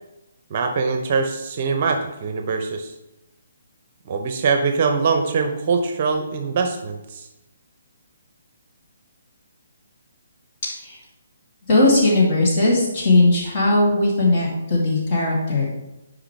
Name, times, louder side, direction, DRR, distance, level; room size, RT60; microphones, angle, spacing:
voice 1, 0.5-2.9 4.1-7.3, right 5 dB, 40° right, 6 dB, 0.7 m, -23 dB
voice 2, 11.7-15.6, left 2 dB, 35° left, -4 dB, 2.4 m, -18 dB
9.8 x 5.1 x 3.2 m, 0.93 s
figure-of-eight pair, 135°, 0 cm